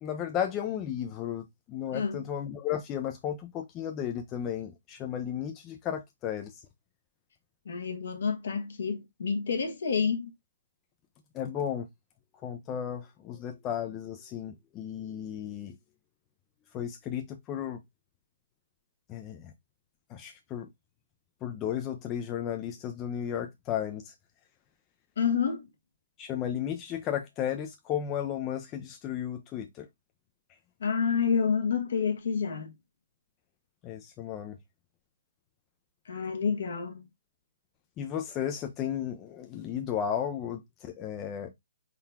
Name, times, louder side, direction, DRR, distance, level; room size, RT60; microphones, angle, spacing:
voice 1, 0.0-6.6 11.3-11.9 12.4-15.8 16.7-17.8 19.1-19.5 20.1-20.7 21.4-24.1 26.2-29.9 33.8-34.6 38.0-41.5, left 9 dB, 25° left, 0.5 m, -34 dB
voice 2, 1.9-2.2 7.6-10.3 25.2-25.7 30.8-32.7 36.1-37.1, left 6 dB, 65° left, 1.1 m, -29 dB
4.4 x 3.8 x 2.2 m
figure-of-eight pair, 135°, 0 cm